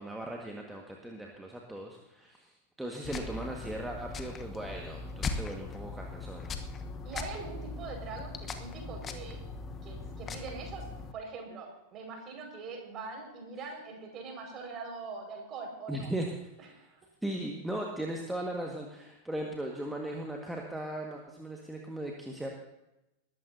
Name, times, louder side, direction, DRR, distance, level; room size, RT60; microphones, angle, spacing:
voice 1, 0.0-2.5 2.8-6.5 15.9-16.3 17.2-22.5, right 1 dB, 5° right, 0 dB, 1.8 m, -38 dB
sound 1, 3.0-11.1, left 4 dB, 25° left, 1.2 m, -39 dB
voice 2, 7.0-9.4 9.8-10.9 11.1-16.1 16.6-17.0, right 4 dB, 30° right, 2 dB, 5.5 m, -43 dB
20.5 x 14.0 x 2.8 m, 0.91 s
figure-of-eight pair, 90°, 0 cm